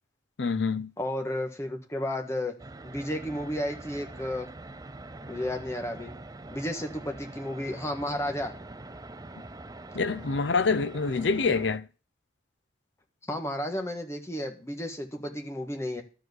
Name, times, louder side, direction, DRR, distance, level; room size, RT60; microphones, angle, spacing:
voice 1, 0.4-0.9 9.9-11.9, left 4 dB, 75° left, 0.6 m, -26 dB
voice 2, 1.0-2.5 2.8-4.5 5.3-6.1 6.5-8.5 13.3-16.0, left 1 dB, 15° left, 1.5 m, -32 dB
sound 1, 2.6-11.8, right 2 dB, 20° right, 0.5 m, -44 dB
12.5 x 4.8 x 8.2 m
head